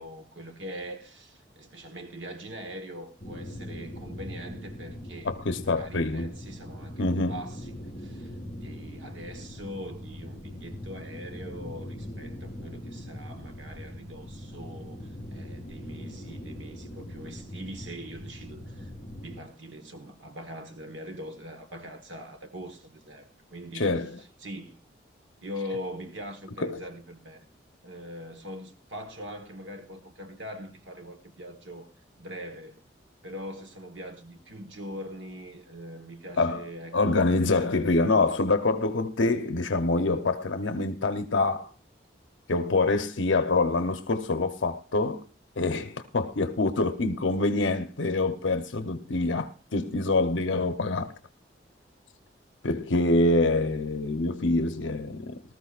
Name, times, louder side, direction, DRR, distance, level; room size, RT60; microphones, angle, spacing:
voice 1, 0.0-24.8 25.4-27.5 27.8-31.9 32.2-32.8 33.2-38.4, equal, 85° right, 1.4 m, -42 dB
sound 1, 3.2-19.4, left 1 dB, 20° left, 3.3 m, -41 dB
voice 2, 5.3-6.3 7.0-7.4 23.8-24.1 26.6-26.8 36.4-36.6 36.9-41.7 42.5-45.2 45.6-51.1 52.6-55.5, left 2 dB, 85° left, 0.9 m, -25 dB
19.5 x 13.5 x 2.4 m
head